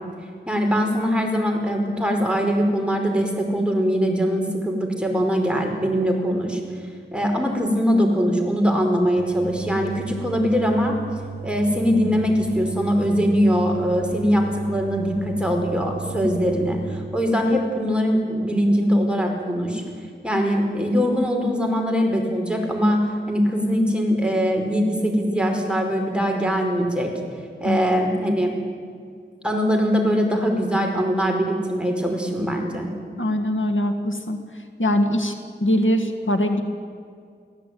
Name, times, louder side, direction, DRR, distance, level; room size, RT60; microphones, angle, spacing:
voice 1, 0.5-6.6 7.1-10.9 11.4-19.8 20.2-27.1 27.6-28.5 29.4-32.9, equal, 5° right, 1 dB, 4.9 m, -22 dB
sound 1, 9.2-16.9, right 5 dB, 15° left, 5.4 m, -35 dB
voice 2, 33.2-34.4 34.8-35.3 35.6-36.6, left 1 dB, 85° left, 6 dB, 1.9 m, -22 dB
23.5 x 16.0 x 9.3 m, 2.2 s
wide cardioid pair, 40°, 20 cm